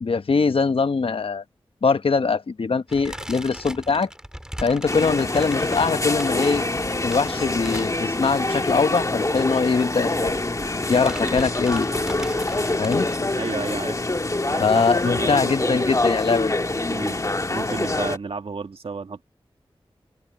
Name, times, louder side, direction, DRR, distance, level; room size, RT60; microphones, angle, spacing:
voice 1, 0.0-1.4 1.8-4.1 4.6-6.6 7.0-10.4 10.9-11.9 12.8-13.1 14.6-16.6, left 4 dB, 70° left, 1.0 m, -22 dB
sound 1, 2.9-8.5 8.7-8.9 9.2-9.3 10.2-10.5 10.8-13.2, equal, 5° right, 3.0 m, -38 dB
sound 2, 4.9-18.2, left 2 dB, 35° left, 1.7 m, -25 dB
sound 3, 5.2-10.8, right 2 dB, 30° right, 7.1 m, -49 dB
voice 2, 13.4-14.0 14.5-14.8 15.2-16.0 16.9-17.2 17.5-19.2, right 4 dB, 75° right, 1.8 m, -32 dB
open air
cardioid pair, 50°, 10 cm